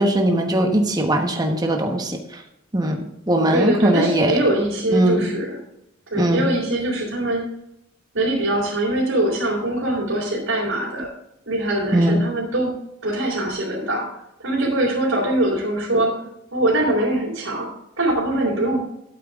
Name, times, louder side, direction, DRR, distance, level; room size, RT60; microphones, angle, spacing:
voice 1, 0.0-2.2 2.7-3.0 3.3-4.3 4.9-5.3 6.2-6.4 11.9-12.2, right 1 dB, 20° right, 2 dB, 1.1 m, -19 dB
voice 2, 3.5-5.6 6.1-7.5 8.1-11.1 11.5-12.7 13.0-14.1 14.4-16.2 16.5-17.7 18.0-18.8, right 1 dB, 80° right, -6 dB, 3.7 m, -22 dB
12.0 x 8.7 x 3.6 m, 0.80 s
head